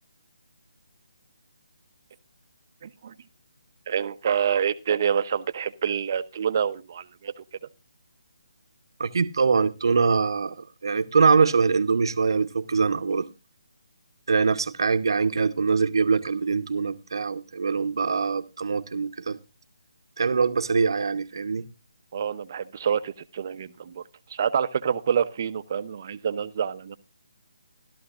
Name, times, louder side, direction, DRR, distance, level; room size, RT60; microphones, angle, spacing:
voice 1, 2.8-3.1 3.9-7.4 22.1-24.0 24.3-27.0, right 8 dB, 40° right, 0.8 m, -27 dB
voice 2, 9.0-13.3 14.3-19.4 20.2-21.7, right 5 dB, 65° right, 1.0 m, -23 dB
15.5 x 12.5 x 2.5 m
hypercardioid pair, 160°, 3 cm